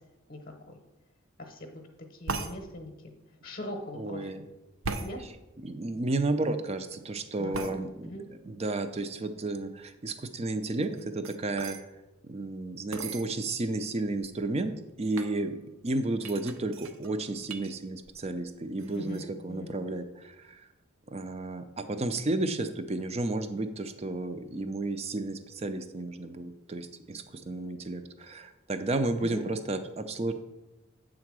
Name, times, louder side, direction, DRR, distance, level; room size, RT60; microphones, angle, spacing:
voice 1, 0.3-0.8 1.4-1.8 2.1-3.1 3.4-4.4 5.0-5.2 7.4-7.7 8.0-8.2 18.9-19.7 29.2-29.5, left 1 dB, 40° left, 3 dB, 0.8 m, -41 dB
sound 1, 2.3-2.5 4.8-5.1 7.5-7.8 10.8-11.8 12.9-13.3 14.0-14.1 14.2-14.6 15.1-15.4 16.2-17.7 18.0-18.5 18.8-19.2, right 4 dB, 75° right, 0.6 m, -37 dB
voice 2, 3.9-4.5 5.2-5.3 5.6-11.8 12.2-20.7 21.1-30.3, right 2 dB, 30° right, 9 dB, 0.5 m, -32 dB
8.1 x 3.8 x 6.1 m, 1.0 s
head